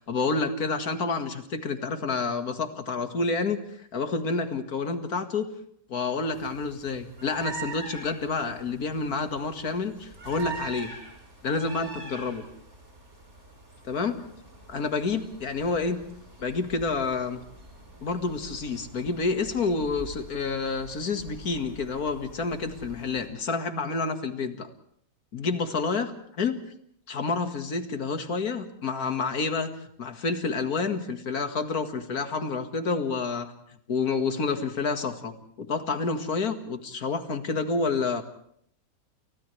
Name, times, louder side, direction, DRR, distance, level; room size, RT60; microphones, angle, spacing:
voice 1, 0.0-5.5 5.9-10.9 11.4-12.4 13.9-14.1 14.7-16.0 16.4-17.4 18.0-24.7 25.3-26.6 27.1-29.7 30.0-33.5 33.9-38.2, left 4 dB, 75° left, 7 dB, 2.3 m, -29 dB
sound 1, 6.3-23.3, right 4 dB, 45° right, 5.1 m, -44 dB
30.0 x 29.5 x 3.3 m, 0.67 s
omnidirectional pair, 1.6 m